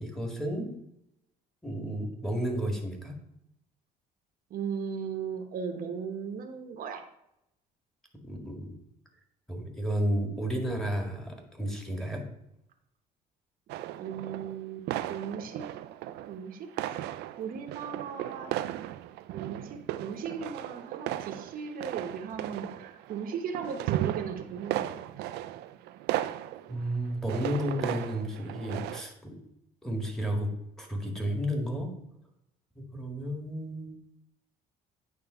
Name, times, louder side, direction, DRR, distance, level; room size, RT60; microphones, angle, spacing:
voice 1, 0.0-0.7 1.6-3.1 8.2-8.7 9.5-12.2 26.7-29.3 29.8-30.5 30.8-31.9 32.8-33.9, equal, ahead, 1 dB, 1.8 m, -32 dB
voice 2, 4.5-7.0 14.0-15.7 16.2-17.1 17.4-18.5 19.3-25.3, right 6 dB, 55° right, 4 dB, 1.0 m, -37 dB
sound 1, 13.7-14.6 14.9-16.4 16.7-29.0, right 13 dB, 80° right, 0.4 m, -36 dB
9.0 x 3.5 x 5.5 m, 0.81 s
cardioid pair, 110°, 17 cm